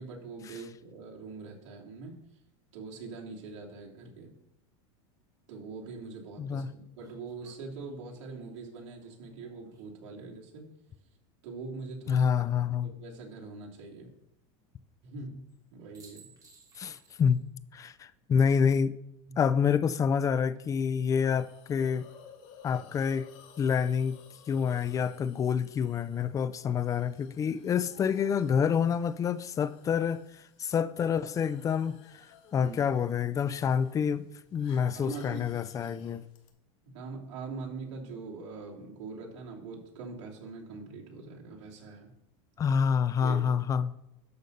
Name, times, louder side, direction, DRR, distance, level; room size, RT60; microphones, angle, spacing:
voice 1, 0.0-2.2 2.7-4.3 5.5-10.7 11.4-12.3 12.8-14.1 15.0-15.4 15.7-16.3 19.3-19.4 32.5-32.8 34.8-35.5 35.9-36.0 36.8-42.1 43.2-43.6, right 4 dB, 70° right, 2.9 m, -43 dB
sound 1, 7.0-10.2 12.0-12.7 15.5-15.6 15.9-17.5 17.8-17.9 20.2-20.7, right 4 dB, 20° right, 2.2 m, -61 dB
voice 2, 12.1-12.9 16.8-17.4 17.7-18.9 19.4-22.1 22.6-23.3 23.6-24.2 24.5-30.2 30.6-32.0 32.5-36.2 42.6-43.9, left 7 dB, 20° left, 0.4 m, -27 dB
Hiss, 21.1-36.5, left 8 dB, 65° left, 1.6 m, -57 dB
12.0 x 4.0 x 6.6 m
supercardioid pair, 140°, 16 cm